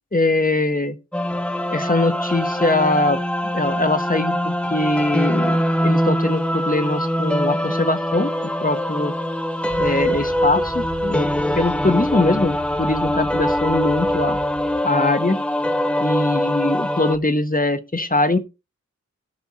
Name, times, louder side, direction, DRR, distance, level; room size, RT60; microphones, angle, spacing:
voice 1, 0.1-1.0 1.7-3.2 3.5-8.3 8.6-9.1 9.8-11.3 11.5-14.4 14.8-15.4 16.0-18.4, left 2 dB, 30° left, 1.4 m, -22 dB
sound 1, 1.1-17.2, equal, 5° left, 1.1 m, -23 dB
sound 2, 9.7-14.8, right 2 dB, 35° right, 2.1 m, -37 dB
17.0 x 5.9 x 4.3 m
wide cardioid pair, 60°, 29 cm